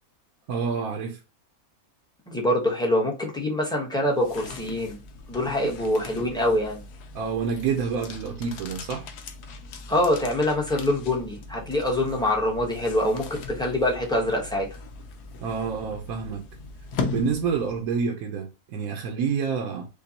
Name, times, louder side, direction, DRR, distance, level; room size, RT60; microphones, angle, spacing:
voice 1, 0.5-1.2 5.6-5.7 7.1-9.1 15.4-16.5 17.0-19.9, right 6 dB, 70° right, 1.1 m, -28 dB
voice 2, 2.3-5.0 5.3-6.8 9.9-14.6, left 1 dB, 5° left, 0.8 m, -25 dB
sound 1, 4.0-18.0, left 4 dB, 85° left, 1.2 m, -39 dB
5.0 x 2.3 x 2.8 m
omnidirectional pair, 1.6 m